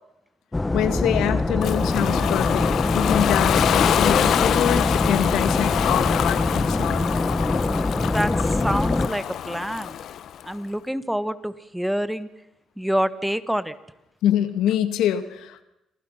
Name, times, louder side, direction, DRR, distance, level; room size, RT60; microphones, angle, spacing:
sound 1, 0.5-9.1, left 2 dB, 15° left, 1.2 m, -24 dB
voice 1, 0.7-7.1 14.2-15.6, left 10 dB, 90° left, 10 dB, 2.1 m, -25 dB
Ocean, 1.6-10.4, left 10 dB, 70° left, 1.0 m, -25 dB
voice 2, 8.1-10.0 10.4-12.3 12.8-13.7, equal, 5° right, 14 dB, 1.4 m, -27 dB
28.5 x 27.0 x 5.9 m, 0.87 s
cardioid pair, 90°, 0 cm